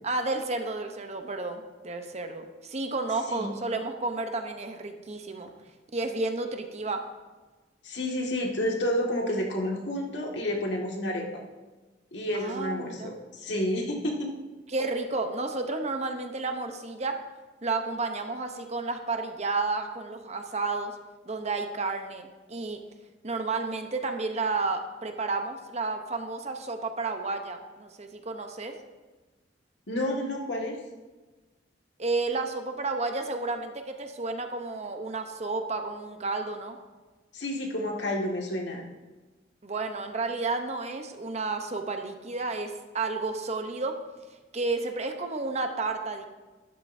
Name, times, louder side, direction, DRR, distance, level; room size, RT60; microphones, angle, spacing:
voice 1, 0.0-5.5 5.9-7.1 12.3-13.2 14.7-17.2 17.6-20.9 21.3-22.8 23.2-28.8 32.0-36.8 39.6-44.0 44.5-46.3, right 3 dB, 35° right, 6 dB, 0.8 m, -31 dB
voice 2, 7.8-11.2 12.1-14.3 29.9-30.8 37.3-38.8, left 1 dB, 70° left, -1 dB, 1.9 m, -30 dB
12.5 x 11.0 x 2.7 m, 1.2 s
head